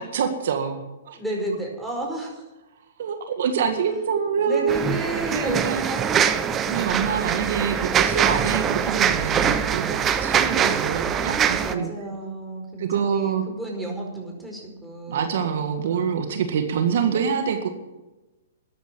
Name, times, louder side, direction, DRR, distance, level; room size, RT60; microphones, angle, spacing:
voice 1, 0.0-1.2 3.0-4.8 5.3-5.8 6.7-11.9 12.8-13.4 15.1-17.7, right 7 dB, 65° right, 6 dB, 1.8 m, -26 dB
voice 2, 1.1-2.4 4.4-6.4 11.2-16.3, right 2 dB, 5° right, -1 dB, 4.9 m, -32 dB
sound 1, 4.7-11.7, right 8 dB, 20° right, 0.9 m, -23 dB
13.0 x 10.0 x 9.1 m, 1.1 s
hypercardioid pair, 130°, 0 cm